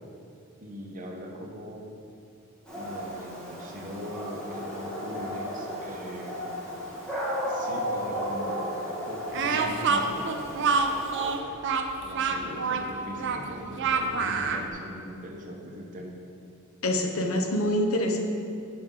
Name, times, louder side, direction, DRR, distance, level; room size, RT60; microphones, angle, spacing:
voice 1, 0.6-1.8 2.7-6.4 7.4-10.3 11.9-16.1, equal, 40° right, 0 dB, 1.0 m, -40 dB
Dog, 2.7-11.4, equal, 5° left, 1.7 m, -34 dB
Speech, 9.3-14.7, right 4 dB, 60° right, 0.5 m, -27 dB
voice 2, 16.8-18.2, left 1 dB, 80° left, 4 dB, 0.8 m, -25 dB
10.5 x 5.1 x 3.8 m, 2.6 s
head